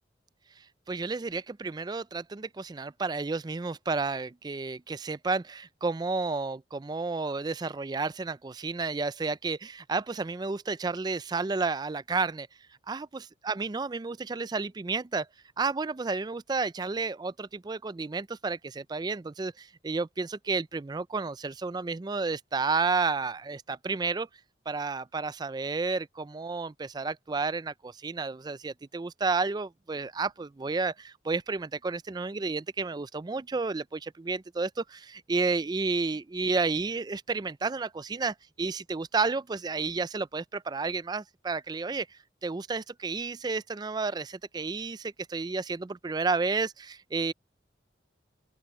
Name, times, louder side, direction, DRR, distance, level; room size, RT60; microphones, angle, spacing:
voice 1, 0.9-12.5 12.9-15.3 15.6-24.3 24.7-47.3, right 4 dB, 20° right, 0.3 m, -31 dB
open air
head